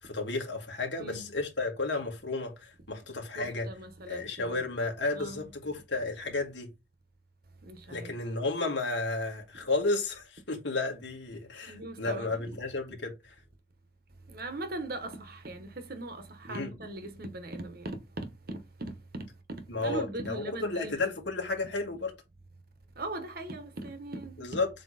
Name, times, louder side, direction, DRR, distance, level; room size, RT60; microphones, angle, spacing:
voice 1, 0.0-3.7 4.1-6.7 7.9-13.3 16.5-16.7 19.7-22.1 24.4-24.7, left 3 dB, 65° left, 2.1 m, -32 dB
voice 2, 1.0-1.3 3.3-4.6 5.1-5.4 7.6-8.1 11.7-12.4 14.3-19.2 19.8-21.2 23.0-24.4, right 2 dB, 50° right, 1.2 m, -40 dB
7.5 x 3.2 x 4.2 m
head